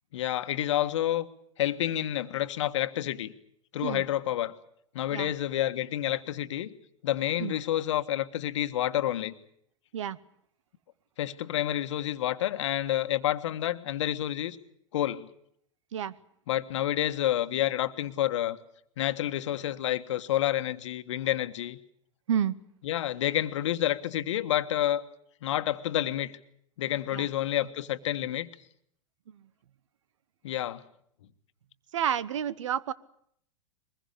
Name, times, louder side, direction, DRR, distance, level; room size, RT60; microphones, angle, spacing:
voice 1, 0.1-1.3 1.6-3.3 3.7-4.5 4.9-6.7 7.0-9.3 11.2-14.6 14.9-15.3 16.5-18.6 19.0-21.8 22.8-25.0 25.4-26.3 26.8-28.5 30.4-30.8, left 12 dB, 65° left, 10 dB, 1.6 m, -29 dB
voice 2, 31.9-32.9, right 9 dB, 70° right, 19 dB, 1.1 m, -30 dB
23.0 x 21.0 x 8.4 m, 0.68 s
hypercardioid pair, 100°, 17 cm